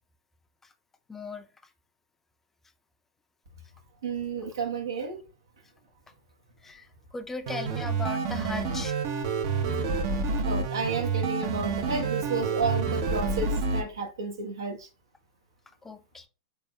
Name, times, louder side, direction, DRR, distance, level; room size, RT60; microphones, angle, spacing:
voice 1, 1.1-1.5 6.6-9.0 15.8-16.3, left 3 dB, 15° left, 0.4 m, -38 dB
voice 2, 4.0-5.2 10.4-14.9, right 4 dB, 80° right, 1.0 m, -31 dB
sound 1, 7.5-13.8, right 4 dB, 55° right, 0.7 m, -28 dB
4.1 x 3.3 x 2.3 m
hypercardioid pair, 100°, 2 cm